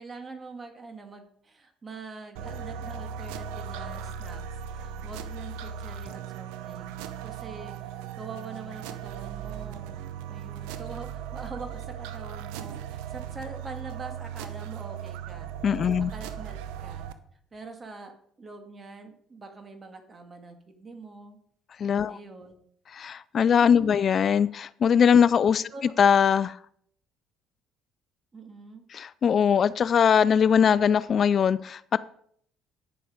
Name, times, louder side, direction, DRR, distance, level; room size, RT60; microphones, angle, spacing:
voice 1, 0.0-4.4 4.7-6.9 7.2-9.9 10.3-15.5 15.8-17.1 17.5-21.4 22.0-22.5 23.5-24.0 25.7-25.9 28.3-28.8, right 3 dB, 30° right, 5 dB, 2.1 m, -44 dB
sound 1, 2.4-17.1, right 8 dB, 85° right, 0.7 m, -38 dB
voice 2, 15.6-16.1 21.8-22.2 22.9-26.6 28.9-32.0, left 7 dB, 50° left, 17 dB, 0.3 m, -21 dB
9.4 x 6.7 x 5.0 m, 0.64 s
supercardioid pair, 70°, 0 cm